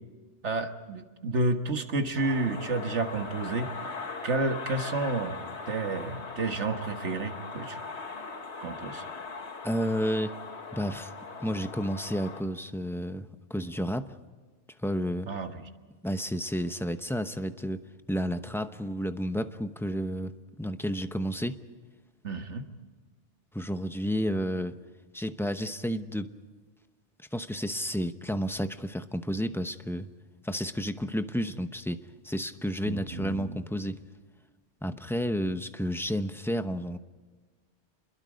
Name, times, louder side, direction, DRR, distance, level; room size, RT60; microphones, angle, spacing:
voice 1, 0.4-3.7 4.2-7.8 8.6-9.0 15.3-15.6 22.2-22.6 32.8-33.6, right 3 dB, 80° right, 6 dB, 1.9 m, -30 dB
sound 1, 2.1-12.4, left 4 dB, 70° left, 1.9 m, -40 dB
voice 2, 9.6-10.4 10.7-11.1 11.4-14.2 14.8-15.3 16.0-17.8 18.1-20.3 20.6-21.6 23.5-24.8 25.1-26.3 27.3-30.1 30.4-34.0 34.8-37.0, equal, ahead, 9 dB, 0.7 m, -31 dB
27.5 x 22.0 x 5.2 m, 1.4 s
omnidirectional pair, 1.2 m